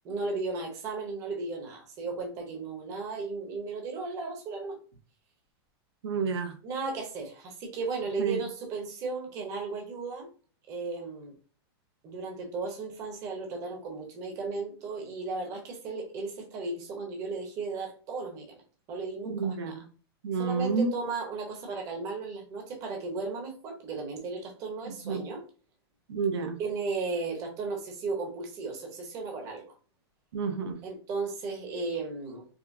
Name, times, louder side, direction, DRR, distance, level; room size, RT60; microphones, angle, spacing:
voice 1, 0.0-4.8 6.6-10.3 10.7-11.3 12.0-18.5 18.9-19.8 20.4-25.4 26.6-29.6 30.8-32.4, right 4 dB, 25° right, 2 dB, 0.9 m, -35 dB
voice 2, 6.0-6.6 8.2-8.4 19.3-19.8 20.2-20.9 24.9-25.3 26.1-26.6 30.3-30.8, right 5 dB, 85° right, 6 dB, 0.8 m, -30 dB
5.0 x 2.1 x 2.6 m, 0.37 s
supercardioid pair, 170°, 13 cm